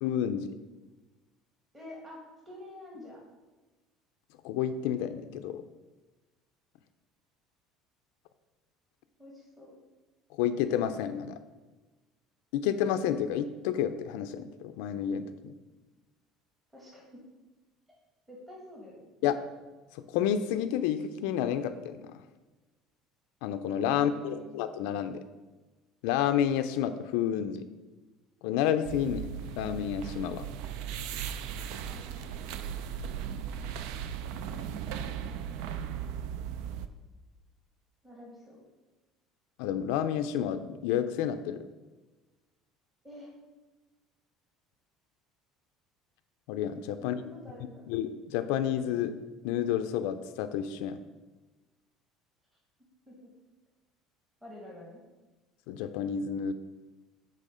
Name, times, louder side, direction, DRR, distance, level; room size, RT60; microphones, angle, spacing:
voice 1, 0.0-0.6 4.4-5.6 10.4-11.4 12.5-15.5 19.2-19.4 20.1-22.2 23.4-25.2 26.0-27.7 28.4-29.2 29.6-30.4 39.6-41.6 46.5-47.2 47.9-49.1 49.4-51.0 55.7-56.5, left 9 dB, 80° left, 10 dB, 0.4 m, -30 dB
voice 2, 1.7-3.2 9.2-9.7 16.7-17.2 18.3-19.1 23.9-24.5 31.9-32.8 38.0-38.6 43.0-43.3 47.0-47.9 53.1-53.3 54.4-55.0, left 1 dB, 10° right, -4 dB, 1.3 m, -48 dB
Southwark Cathedral - Quiet prayer room, 28.8-36.9, right 8 dB, 70° right, 0.4 m, -37 dB
7.6 x 3.6 x 5.0 m, 1.2 s
cardioid pair, 165°, 0 cm